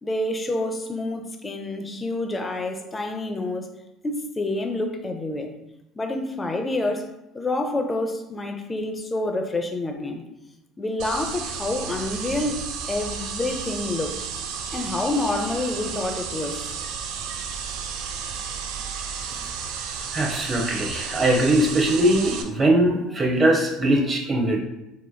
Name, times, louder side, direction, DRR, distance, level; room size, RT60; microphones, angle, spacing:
voice 1, 0.0-3.7 4.0-5.5 6.0-10.2 10.8-14.2 14.7-16.7, left 2 dB, 20° left, 5 dB, 0.6 m, -28 dB
sound 1, 11.0-22.4, right 6 dB, 65° right, 0.4 m, -32 dB
voice 2, 20.1-24.6, right 1 dB, 30° right, 0 dB, 1.0 m, -21 dB
4.1 x 3.0 x 2.3 m, 0.93 s
hypercardioid pair, 70°, 0 cm